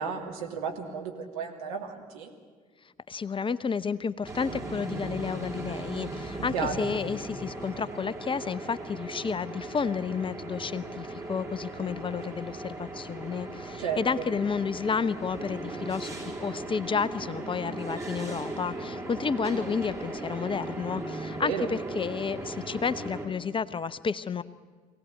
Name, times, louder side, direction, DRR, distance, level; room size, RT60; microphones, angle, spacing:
voice 1, 0.0-2.3 6.5-6.7 13.8-14.3 21.4-21.7, right 6 dB, 75° right, 1 dB, 2.7 m, -33 dB
voice 2, 3.1-24.4, left 5 dB, 30° left, 16 dB, 0.8 m, -31 dB
sound 1, 4.2-23.3, right 2 dB, 15° right, 5.0 m, -37 dB
23.5 x 17.5 x 9.5 m, 1.5 s
figure-of-eight pair, 50°, 18 cm